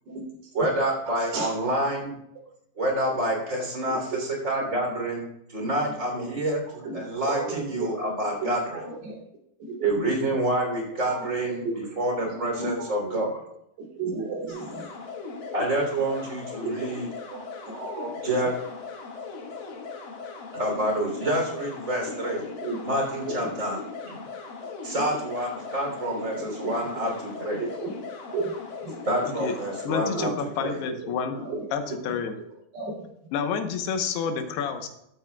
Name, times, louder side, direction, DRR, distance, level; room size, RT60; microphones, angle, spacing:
voice 1, 0.5-2.1 2.8-8.8 9.8-11.7 12.0-13.4 15.5-17.1 18.2-18.5 20.5-22.4 22.8-23.8 24.0-24.2 24.8-27.6 29.0-30.3 30.6-30.8, right 1 dB, 20° right, 0 dB, 3.1 m, -27 dB
voice 2, 1.1-1.5 3.9-4.0 5.6-5.7 6.1-6.3 6.8-7.0 7.2-8.1 8.4-9.1 9.6-9.9 11.0-11.8 12.2-13.1 13.8-14.9 16.7-16.9 17.3-17.4 17.7-18.1 22.6-22.8 23.3-23.7 24.9-25.1 26.3-26.7 27.6-27.9 28.3-28.5 28.8-28.9 30.0-30.3 30.9-32.0 32.7-32.9, right 3 dB, 80° right, -3 dB, 5.2 m, -34 dB
sound 1, 14.5-29.9, left 4 dB, 65° left, 3.4 m, -38 dB
voice 3, 29.8-31.4 31.7-32.3 33.3-34.9, left 6 dB, 90° left, 6 dB, 3.1 m, -29 dB
14.0 x 13.0 x 2.3 m, 0.78 s
omnidirectional pair, 4.5 m